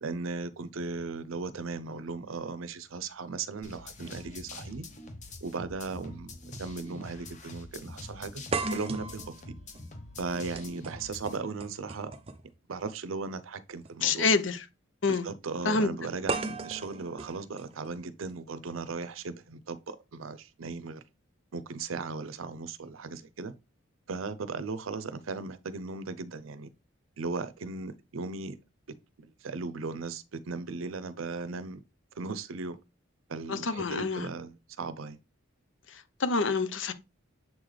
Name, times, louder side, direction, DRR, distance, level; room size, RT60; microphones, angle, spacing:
voice 1, 0.0-4.9 5.4-6.3 6.6-8.4 8.7-9.3 10.2-12.1 12.7-14.3 15.1-21.0 21.5-23.5 24.1-26.7 27.2-28.6 29.2-31.8 32.2-32.8 33.3-35.2, right 4 dB, 80° right, 0.6 m, -37 dB
sound 1, 3.6-11.4, left 2 dB, 35° left, 0.8 m, -45 dB
sound 2, 5.3-5.4 6.5-6.7 7.1-7.2 8.5-12.5 13.7-13.9 16.3-18.3, right 3 dB, 30° right, 0.5 m, -37 dB
voice 2, 14.0-14.6 15.0-15.3 15.6-15.9 33.5-34.3 35.9-36.9, left 4 dB, 70° left, 0.7 m, -27 dB
7.4 x 3.9 x 3.2 m
head